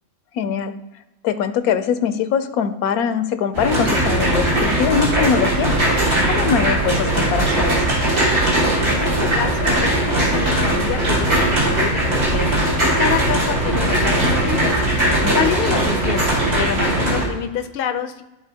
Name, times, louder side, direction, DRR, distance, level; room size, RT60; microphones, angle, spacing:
voice 1, 0.3-0.7 1.2-5.8 6.3-7.8 15.2-15.6, left 7 dB, 85° left, 11 dB, 1.1 m, -22 dB
sound 1, 3.5-17.3, right 1 dB, 85° right, 3.0 m, -19 dB
voice 2, 8.9-18.2, left 8 dB, 60° left, 8 dB, 0.6 m, -27 dB
13.0 x 4.4 x 2.8 m, 1.0 s
omnidirectional pair, 1.5 m